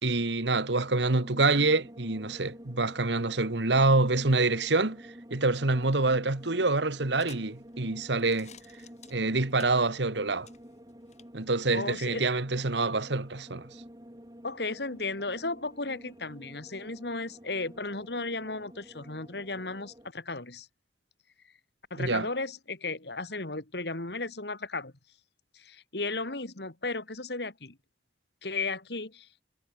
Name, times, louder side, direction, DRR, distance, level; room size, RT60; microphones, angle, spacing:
voice 1, 0.0-8.5 9.1-10.5 11.3-13.7 22.0-22.3, right 3 dB, 75° right, 1.7 m, -26 dB
sound 1, 0.8-20.1, equal, 20° right, 5.3 m, -49 dB
sound 2, 5.5-11.3, left 6 dB, 40° left, 5.8 m, -56 dB
voice 2, 11.7-12.2 14.4-20.7 21.9-24.9 25.5-27.8 28.4-29.3, left 3 dB, 65° left, 2.5 m, -35 dB
head